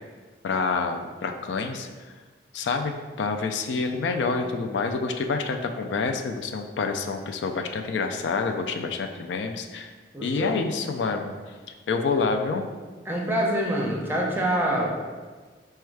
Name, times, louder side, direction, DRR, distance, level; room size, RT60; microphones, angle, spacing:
voice 1, 0.4-1.9 2.5-9.9 10.2-11.3 11.9-12.7, left 4 dB, 75° left, 5 dB, 0.4 m, -27 dB
voice 2, 10.1-10.6 13.0-14.9, right 1 dB, 15° right, -2 dB, 0.6 m, -25 dB
4.3 x 2.3 x 4.6 m, 1.4 s
head